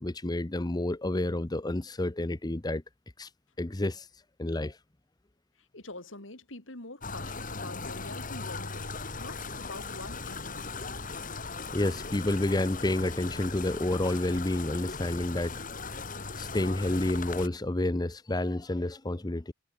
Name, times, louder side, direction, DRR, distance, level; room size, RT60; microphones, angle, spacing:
voice 1, 0.0-2.8 3.2-3.3 3.6-4.1 4.4-4.8 11.7-15.6 16.4-19.5, left 1 dB, 20° left, 0.8 m, -29 dB
voice 2, 5.6-10.8, left 2 dB, 85° left, 4.8 m, -45 dB
sound 1, 7.0-17.5, left 4 dB, 45° left, 4.7 m, -38 dB
head